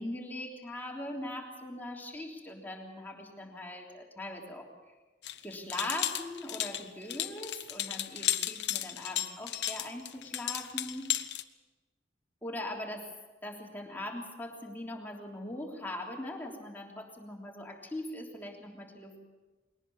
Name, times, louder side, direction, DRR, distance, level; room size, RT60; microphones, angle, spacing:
voice 1, 0.0-4.9 5.4-11.1 12.4-13.1 13.4-19.2, left 1 dB, 10° left, -1 dB, 3.3 m, -41 dB
sound 1, 5.2-11.4, left 12 dB, 75° left, 1.0 m, -34 dB
21.5 x 19.0 x 7.0 m, 1.2 s
head